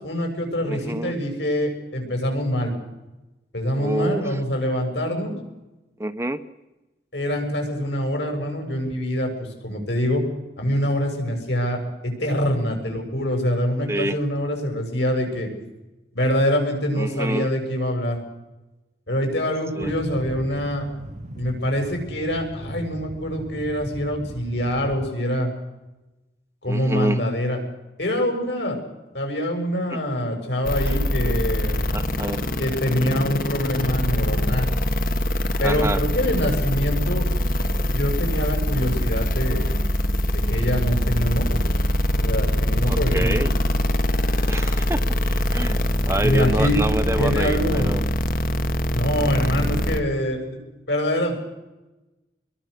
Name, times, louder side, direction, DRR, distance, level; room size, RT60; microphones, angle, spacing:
voice 1, 0.0-2.7 3.5-5.4 7.1-10.2 10.6-15.5 16.1-18.2 19.1-20.9 21.4-25.5 26.6-27.6 28.0-28.8 29.1-31.8 32.6-34.7 35.6-37.2 37.9-39.7 40.3-41.6 42.1-43.4 46.2-46.8 47.1-47.9 48.9-50.6 50.9-51.4, equal, 85° left, 3 dB, 7.3 m, -25 dB
voice 2, 0.7-1.2 3.8-4.4 6.0-6.4 13.9-14.2 16.9-17.5 19.7-19.9 26.7-27.2 29.9-30.0 30.9-31.0 31.9-32.4 35.6-36.0 42.8-43.5 44.5-48.0 49.2-49.3, right 1 dB, 15° right, 11 dB, 0.9 m, -27 dB
sound 1, 19.8-25.1, right 1 dB, 40° right, 1.2 m, -38 dB
sound 2, 30.7-50.0, left 1 dB, 50° left, 1.6 m, -23 dB
27.5 x 22.0 x 6.7 m, 1.0 s
head